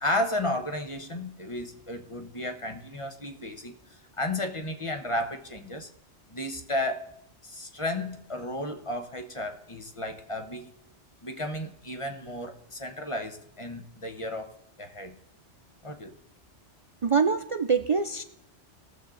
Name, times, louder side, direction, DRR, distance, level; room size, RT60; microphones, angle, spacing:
voice 1, 0.0-3.7 4.2-5.9 6.3-7.1 7.4-10.7 11.2-14.5 14.8-15.2 15.8-16.1, left 1 dB, 30° left, 6 dB, 1.1 m, -33 dB
voice 2, 17.0-18.2, right 5 dB, 55° right, 9 dB, 0.3 m, -24 dB
18.5 x 7.3 x 3.9 m, 0.80 s
omnidirectional pair, 1.2 m